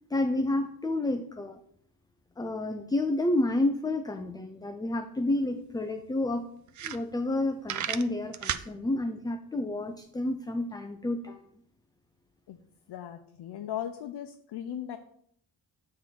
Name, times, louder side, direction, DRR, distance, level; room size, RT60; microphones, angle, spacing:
voice 1, 0.1-1.6 2.4-6.5 6.8-11.4, left 2 dB, 10° left, 7 dB, 0.3 m, -30 dB
sound 1, 5.3-5.4 5.7-5.8 6.3-6.4 6.7-7.4 7.6-8.7, right 9 dB, 50° right, 0.5 m, -33 dB
voice 2, 12.9-15.0, left 10 dB, 80° left, 6 dB, 0.7 m, -37 dB
8.8 x 3.7 x 5.9 m, 0.67 s
wide cardioid pair, 155°, 39 cm